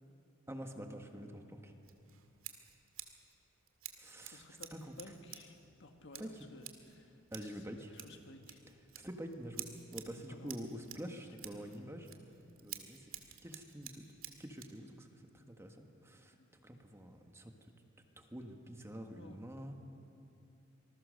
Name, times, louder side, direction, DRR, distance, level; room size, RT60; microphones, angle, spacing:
voice 1, 0.5-1.7 4.0-4.4 4.7-4.9 6.2-6.3 7.3-7.9 8.9-12.1 12.6-13.1 13.4-14.0 14.4-15.1 15.3-16.3 16.6-17.5 18.2-19.8, equal, 15° right, 4 dB, 1.5 m, -47 dB
Scissors, 1.8-14.8, right 11 dB, 80° right, 2.0 m, -52 dB
voice 2, 4.3-4.7 5.0-8.6 10.3-10.6 11.5-11.6 16.4-16.5 19.1-19.4, left 2 dB, 60° left, 5 dB, 1.8 m, -56 dB
26.5 x 20.5 x 6.5 m, 2.7 s
head